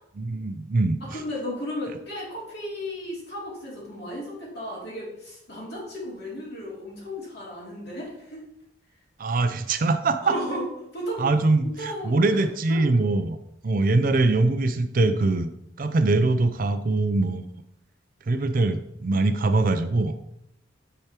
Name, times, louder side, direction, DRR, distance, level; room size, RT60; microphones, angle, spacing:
voice 1, 0.2-1.0 9.2-10.4 11.2-13.4 13.6-15.5 15.8-17.5 18.3-20.2, right 2 dB, 45° right, 9 dB, 0.4 m, -22 dB
voice 2, 1.0-8.4 10.2-10.7 10.9-11.2 11.8-12.4 12.7-12.8, equal, 50° left, -5 dB, 2.7 m, -34 dB
10.0 x 4.6 x 2.9 m, 0.78 s
head